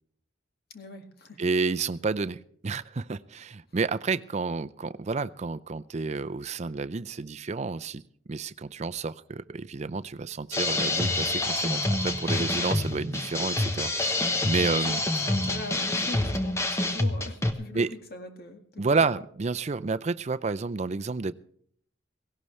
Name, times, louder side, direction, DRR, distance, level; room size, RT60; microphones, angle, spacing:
voice 1, 0.7-1.4 12.2-12.5 14.6-15.0 15.2-17.8 18.1-18.9, left 2 dB, 55° left, 5 dB, 2.0 m, -41 dB
voice 2, 1.4-8.0 8.3-15.0 17.7-17.9 18.8-21.3, right 4 dB, 35° right, 13 dB, 0.5 m, -30 dB
sound 1, 10.5-17.5, left 2 dB, 15° left, 1.0 m, -27 dB
17.5 x 17.0 x 3.3 m, 0.64 s
head